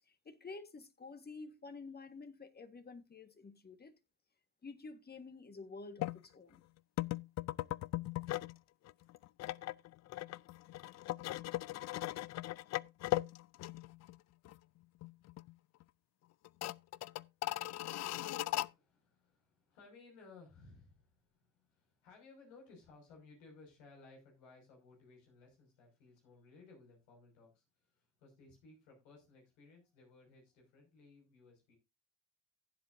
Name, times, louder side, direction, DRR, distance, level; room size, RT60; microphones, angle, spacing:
voice 1, 0.1-4.0 4.6-6.6, left 4 dB, 25° left, 1.5 m, -50 dB
sound 1, 6.0-6.2 7.0-8.6 8.9-14.2 14.5-14.6 15.0-15.5 15.8-15.9 16.4-18.7, left 16 dB, 45° left, 0.4 m, -39 dB
voice 2, 18.1-31.7, left 3 dB, 85° left, 5.8 m, -60 dB
16.0 x 7.6 x 2.6 m
supercardioid pair, 75°, 37 cm